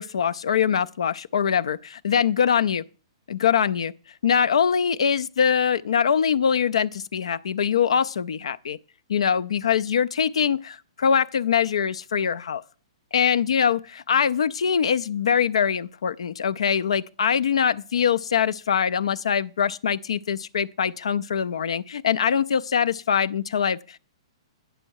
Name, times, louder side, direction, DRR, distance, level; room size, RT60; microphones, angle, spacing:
voice 1, 0.0-2.8 3.3-3.9 4.2-8.8 9.1-12.6 13.1-24.0, left 7 dB, 85° left, 0.3 m, -23 dB
8.9 x 6.2 x 4.6 m
hypercardioid pair, 140°, 3 cm